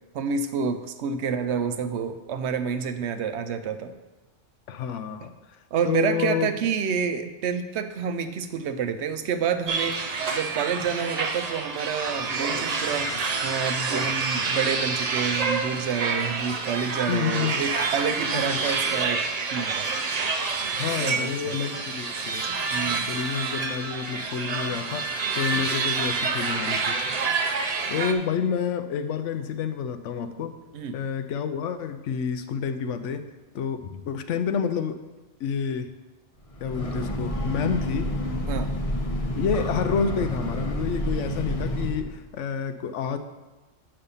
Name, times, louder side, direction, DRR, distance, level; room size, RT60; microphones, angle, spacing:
voice 1, 0.1-3.9 5.7-19.9 21.0-21.5 22.7-23.2 30.7-31.0 38.5-38.7, right 6 dB, 70° right, 9 dB, 0.8 m, -28 dB
voice 2, 4.7-5.3 5.8-6.5 13.1-13.2 17.1-17.7 18.3-18.6 20.7-22.4 23.1-27.4 27.9-30.6 30.9-33.3 33.5-35.0 35.4-35.9 36.6-38.1 39.4-43.2, left 7 dB, 80° left, 9 dB, 0.9 m, -29 dB
sound 1, 9.7-28.1, right 4 dB, 45° right, 0.5 m, -28 dB
Breathing / Train, 36.4-42.2, left 1 dB, 35° left, 0.7 m, -29 dB
6.8 x 5.6 x 5.5 m, 1.2 s
omnidirectional pair, 1.2 m